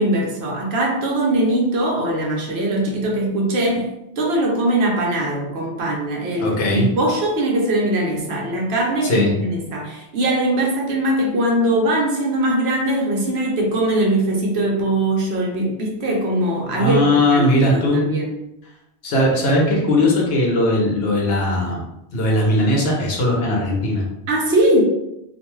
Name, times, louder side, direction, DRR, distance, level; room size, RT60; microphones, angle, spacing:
voice 1, 0.0-3.9 4.2-17.5 17.7-18.4 24.3-24.8, right 1 dB, 70° right, -2 dB, 0.9 m, -21 dB
voice 2, 6.4-6.9 9.0-9.4 16.7-18.0 19.0-21.8 22.1-24.1, left 1 dB, 65° left, -1 dB, 0.9 m, -18 dB
2.5 x 2.2 x 3.0 m, 0.88 s
omnidirectional pair, 1.2 m